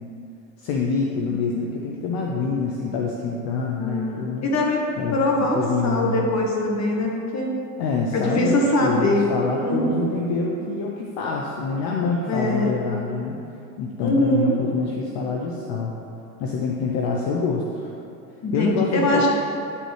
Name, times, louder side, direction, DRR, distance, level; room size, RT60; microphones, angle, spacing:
voice 1, 0.6-4.5 5.0-6.2 7.8-13.4 13.8-16.0 16.4-17.9 18.5-19.3, left 4 dB, 65° left, -1 dB, 0.7 m, -26 dB
voice 2, 3.8-4.8 5.1-5.6 5.8-7.5 8.1-9.3 9.6-10.0 12.3-12.7 14.0-14.6 18.4-19.3, left 1 dB, 45° left, -1 dB, 1.5 m, -22 dB
9.7 x 4.1 x 3.3 m, 2.7 s
hypercardioid pair, 70°, 39 cm